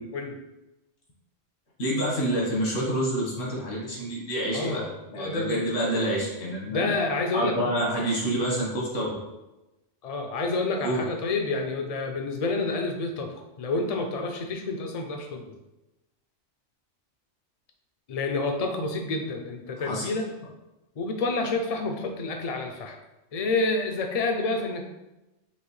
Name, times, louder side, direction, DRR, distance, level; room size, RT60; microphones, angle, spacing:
voice 1, 1.8-4.8 5.1-6.9 7.3-9.1 10.8-11.0 19.8-20.1, right 1 dB, 80° left, -4 dB, 1.7 m, -27 dB
voice 2, 4.5-5.6 6.7-7.6 10.0-15.5 18.1-20.3 21.0-23.0 23.3-24.8, left 3 dB, 50° left, 4 dB, 0.4 m, -29 dB
5.8 x 2.6 x 3.1 m, 1.0 s
omnidirectional pair, 1.3 m